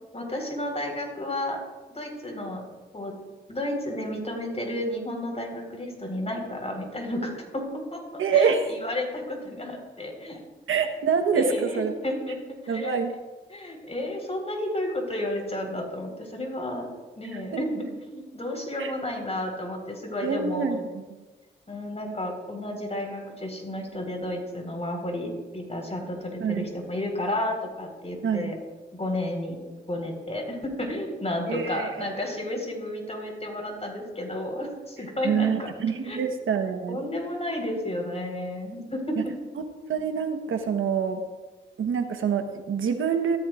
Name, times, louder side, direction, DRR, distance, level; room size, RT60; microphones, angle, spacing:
voice 1, 0.1-1.6 1.9-2.6 2.9-3.1 3.5-7.6 7.9-10.4 11.3-12.4 12.6-13.0 13.5-16.9 17.2-20.8 21.7-28.5 28.9-29.6 29.9-35.5 36.0-36.2 36.9-39.2, left 1 dB, 30° left, 2 dB, 4.3 m, -32 dB
voice 2, 8.2-8.6 10.7-11.9 12.7-13.2 17.5-17.6 18.8-18.9 20.2-21.0 26.4-26.7 28.2-28.5 31.5-32.1 35.2-37.0 39.9-41.2 41.8-43.4, right 6 dB, 90° right, 6 dB, 1.2 m, -26 dB
17.0 x 14.0 x 2.5 m, 1.2 s
cardioid pair, 60°, 20 cm